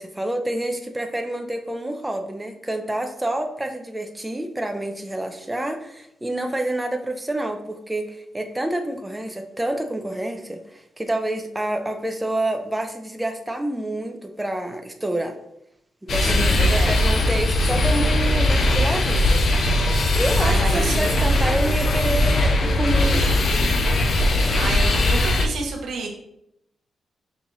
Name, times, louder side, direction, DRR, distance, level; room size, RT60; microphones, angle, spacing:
voice 1, 0.0-15.3 16.0-19.3 20.1-23.5 23.8-23.9, right 1 dB, 15° right, 4 dB, 0.5 m, -28 dB
sound 1, 16.1-25.5, left 1 dB, 65° left, 0.5 m, -19 dB
voice 2, 16.2-17.0 20.0-21.2 24.3-26.1, right 3 dB, 85° right, 2 dB, 0.7 m, -30 dB
5.4 x 2.4 x 3.0 m, 0.80 s
cardioid pair, 70°, 0 cm